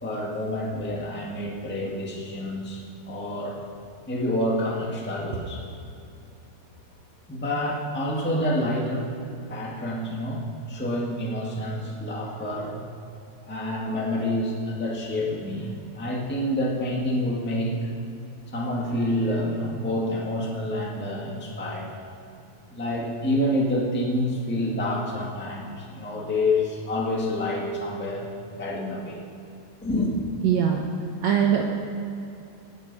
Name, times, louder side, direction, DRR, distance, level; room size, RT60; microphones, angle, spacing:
voice 1, 0.0-3.6 4.1-5.6 7.3-9.0 9.5-10.4 10.7-12.9 13.5-17.7 18.5-21.9 22.7-29.2 29.8-30.1, left 1 dB, 10° left, -3 dB, 0.7 m, -28 dB
voice 2, 30.4-30.8 31.2-31.6, right 9 dB, 75° right, 1 dB, 1.7 m, -21 dB
19.5 x 7.5 x 5.4 m, 2.7 s
omnidirectional pair, 4.0 m